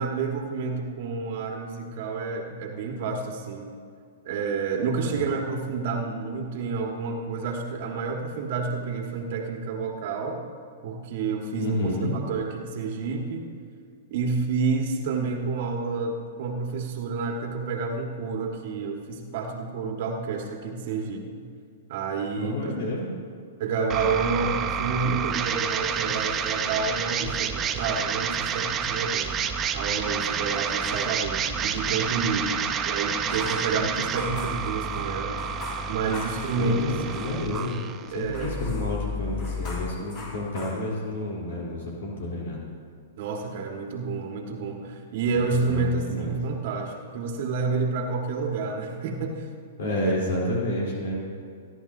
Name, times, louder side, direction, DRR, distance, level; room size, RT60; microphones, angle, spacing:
voice 1, 0.0-3.7 4.2-10.4 10.8-13.5 14.1-21.4 21.9-22.7 23.6-29.4 29.7-35.4 35.9-36.9 38.1-38.6 43.2-49.5 50.0-50.1, right 4 dB, 55° right, 2 dB, 1.7 m, -29 dB
voice 2, 11.6-12.2 22.4-23.1 36.6-37.8 38.1-42.6 45.3-45.4 45.7-46.4 49.8-51.1, left 1 dB, 70° left, -3 dB, 3.5 m, -30 dB
sound 1, 23.9-39.9, right 6 dB, 25° right, 0.8 m, -29 dB
sound 2, 25.9-27.1 27.5-31.6 33.1-38.0 38.3-41.3, left 2 dB, 40° left, 4.0 m, -43 dB
27.5 x 11.0 x 2.7 m, 2.3 s
hypercardioid pair, 120°, 0 cm